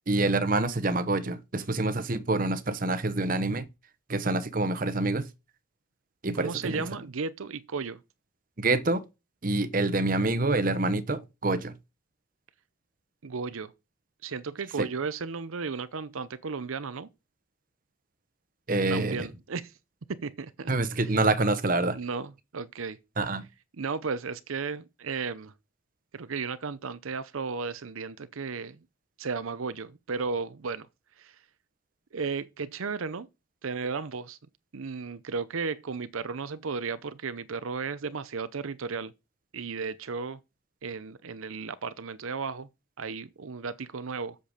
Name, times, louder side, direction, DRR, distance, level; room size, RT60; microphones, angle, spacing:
voice 1, 0.1-3.7 4.1-5.2 6.2-6.8 8.6-9.0 9.4-11.7 14.8-14.9 18.7-19.3 20.7-22.0 23.2-23.4, right 2 dB, 40° right, 0.9 m, -26 dB
voice 2, 6.3-8.0 13.2-13.7 14.2-17.1 18.9-19.7 20.1-20.7 21.0-21.2 21.9-23.0 23.8-25.5 26.1-28.8 29.2-30.9 31.2-31.4 32.1-33.3 33.6-34.4 34.7-39.1 39.5-40.4 40.8-42.7 43.0-44.4, right 5 dB, 85° right, 0.7 m, -34 dB
8.0 x 6.8 x 5.0 m
head